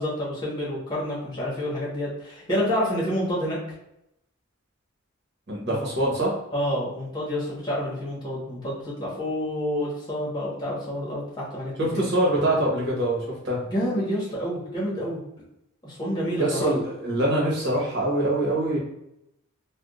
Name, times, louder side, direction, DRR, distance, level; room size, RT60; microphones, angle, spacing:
voice 1, 0.0-3.6 5.7-5.8 6.5-12.1 13.7-15.2 15.8-16.7, equal, 20° left, -6 dB, 1.2 m, -28 dB
voice 2, 5.5-6.3 11.8-13.2 13.4-13.7 16.4-18.8, right 1 dB, 55° right, -4 dB, 1.2 m, -24 dB
3.4 x 2.3 x 2.4 m, 0.82 s
head